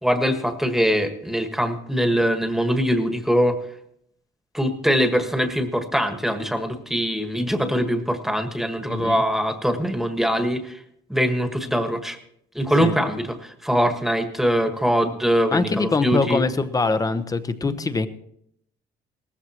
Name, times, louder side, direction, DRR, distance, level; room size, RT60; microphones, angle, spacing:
voice 1, 0.0-3.6 4.5-10.8 11.1-12.2 12.5-16.4 17.7-17.8, equal, ahead, 7 dB, 1.5 m, -22 dB
voice 2, 8.9-9.2 12.8-13.0 15.5-18.1, left 3 dB, 20° left, 12 dB, 0.9 m, -23 dB
18.0 x 14.5 x 3.0 m, 0.72 s
cardioid pair, 110°, 17 cm